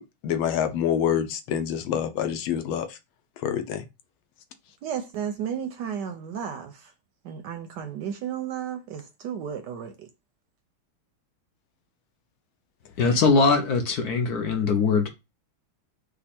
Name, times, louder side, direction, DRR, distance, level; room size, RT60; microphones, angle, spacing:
voice 1, 0.2-3.0 3.4-3.8, left 9 dB, 85° left, 1.5 m, -26 dB
voice 2, 4.8-6.9 7.2-10.1, right 8 dB, 75° right, 1.0 m, -33 dB
voice 3, 13.0-15.1, left 4 dB, 65° left, 1.1 m, -21 dB
5.3 x 2.3 x 4.2 m
omnidirectional pair, 2.2 m